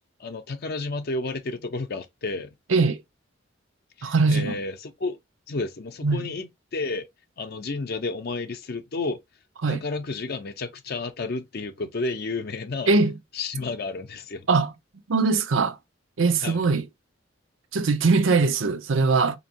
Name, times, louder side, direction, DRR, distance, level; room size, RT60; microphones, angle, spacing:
voice 1, 0.2-2.5 4.0-5.2 5.5-7.1 7.4-9.2 9.7-12.9 13.3-14.5 16.4-16.7, left 3 dB, 55° left, 0.5 m, -31 dB
voice 2, 4.0-4.6 6.0-6.3 9.6-9.8 12.9-13.1 14.5-14.7 15.1-15.8 16.2-16.8 17.7-19.4, right 4 dB, 90° right, 0.6 m, -21 dB
5.1 x 2.8 x 2.8 m
head